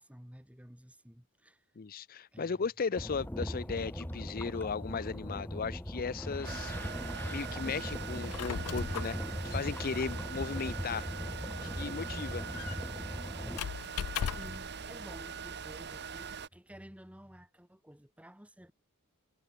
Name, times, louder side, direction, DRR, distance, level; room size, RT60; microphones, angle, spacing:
voice 1, 0.0-1.6 2.3-2.7 14.4-18.7, equal, 5° right, 2.0 m, -53 dB
voice 2, 1.8-6.7 7.3-9.2 9.4-11.1 11.6-12.4, left 5 dB, 45° left, 0.5 m, -36 dB
sound 1, 3.0-13.6, equal, 10° left, 1.3 m, -39 dB
sound 2, 6.4-16.5, right 6 dB, 50° right, 1.5 m, -42 dB
Squeak, 8.1-14.7, left 8 dB, 90° left, 0.4 m, -41 dB
head